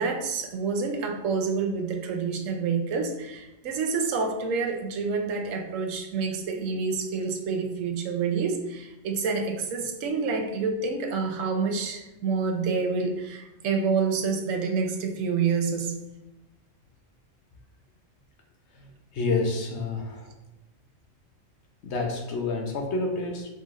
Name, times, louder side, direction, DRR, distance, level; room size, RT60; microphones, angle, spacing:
voice 1, 0.0-16.0, right 5 dB, 85° right, 4 dB, 1.1 m, -28 dB
voice 2, 18.7-20.3 21.8-23.5, left 3 dB, 60° left, 3 dB, 0.9 m, -29 dB
5.3 x 3.8 x 2.5 m, 0.99 s
omnidirectional pair, 1.4 m